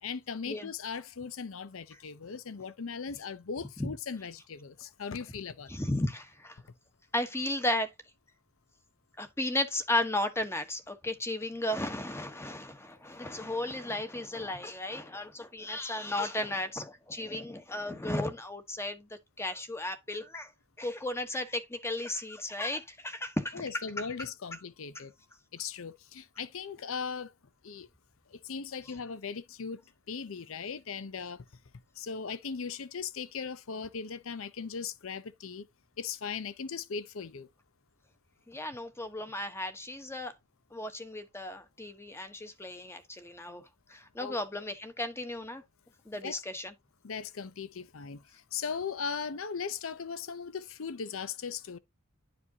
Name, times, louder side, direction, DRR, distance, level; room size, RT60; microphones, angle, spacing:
voice 1, 0.0-5.7 23.5-25.1 25.5-27.3 27.6-27.9 28.3-29.8 30.1-31.4 32.0-35.7 36.0-37.5 44.2-44.4 46.2-46.4 47.0-51.8, left 6 dB, 70° left, 0.6 m, -38 dB
voice 2, 5.7-6.6 7.1-7.9 9.2-20.5 20.8-24.1 24.9-25.0 38.5-40.3 40.7-43.6 43.9-45.6 46.0-46.7, left 1 dB, 10° left, 1.1 m, -34 dB
11.0 x 5.0 x 2.8 m
head